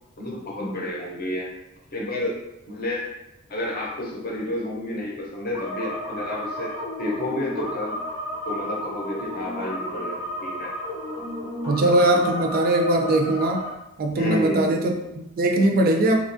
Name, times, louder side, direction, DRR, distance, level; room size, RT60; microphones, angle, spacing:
voice 1, 0.2-1.5 1.9-2.4 2.7-3.1 3.5-8.0 8.5-10.7 14.2-14.8, left 1 dB, 45° left, -3 dB, 0.7 m, -30 dB
sound 1, 5.5-13.7, equal, 90° left, 0.8 m, -32 dB
voice 2, 11.7-13.6 14.0-16.2, right 1 dB, 45° right, 3 dB, 0.4 m, -21 dB
3.0 x 2.3 x 2.5 m, 0.90 s
head